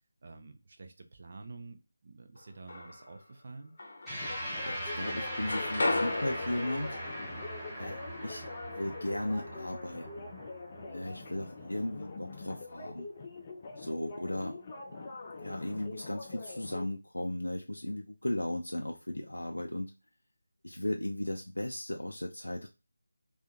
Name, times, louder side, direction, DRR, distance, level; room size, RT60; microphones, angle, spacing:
voice 1, 0.2-3.7, right 3 dB, 40° right, 5 dB, 0.5 m, -49 dB
sound 1, 2.4-3.2 3.8-4.8 5.1-9.0, left 2 dB, 45° left, 0.8 m, -36 dB
sound 2, 4.1-16.9, left 3 dB, 25° left, 0.5 m, -44 dB
sound 3, 4.1-12.7, equal, 5° right, 0.8 m, -41 dB
voice 2, 4.6-7.0 7.8-8.4 8.8-10.3 10.9-13.1 13.8-14.6 15.3-19.9 20.6-22.7, left 1 dB, 75° left, 2 dB, 0.4 m, -36 dB
3.5 x 2.5 x 2.2 m, 0.28 s
figure-of-eight pair, 160°, 0 cm